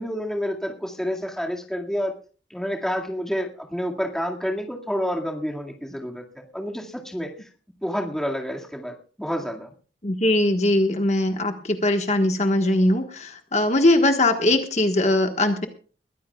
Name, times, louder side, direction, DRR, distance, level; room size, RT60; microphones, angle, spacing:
voice 1, 0.0-2.1 2.5-7.5 7.8-9.7, equal, 5° left, 0 dB, 2.0 m, -29 dB
voice 2, 10.0-15.7, left 1 dB, 40° left, 5 dB, 1.4 m, -21 dB
22.0 x 15.0 x 2.4 m, 0.39 s
head